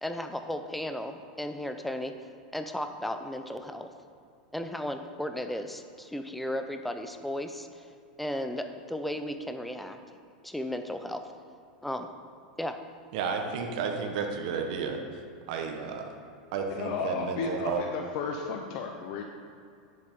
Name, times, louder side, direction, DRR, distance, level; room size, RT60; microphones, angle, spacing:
voice 1, 0.0-2.1 2.5-3.9 4.5-7.9 8.2-10.0 10.4-11.2 11.8-12.1 12.6-12.8, left 1 dB, ahead, 6 dB, 0.6 m, -35 dB
voice 2, 13.1-15.2 15.5-16.1 16.5-17.8, right 5 dB, 65° right, 3 dB, 1.2 m, -32 dB
voice 3, 16.7-19.2, left 5 dB, 55° left, 3 dB, 0.8 m, -33 dB
9.9 x 7.7 x 3.8 m, 2.4 s
supercardioid pair, 130°, 4 cm